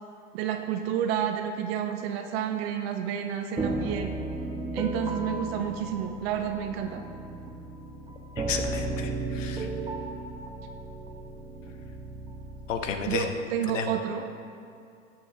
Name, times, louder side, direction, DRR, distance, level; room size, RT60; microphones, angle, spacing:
voice 1, 0.3-4.1 4.7-7.0 13.1-14.3, right 9 dB, 50° right, 6 dB, 0.8 m, -30 dB
sound 1, 3.6-13.2, right 2 dB, 10° right, 0.9 m, -35 dB
voice 2, 8.5-9.7 12.7-13.2 13.7-13.9, left 7 dB, 70° left, 6 dB, 1.1 m, -32 dB
13.5 x 7.8 x 3.6 m, 2.5 s
hypercardioid pair, 100°, 39 cm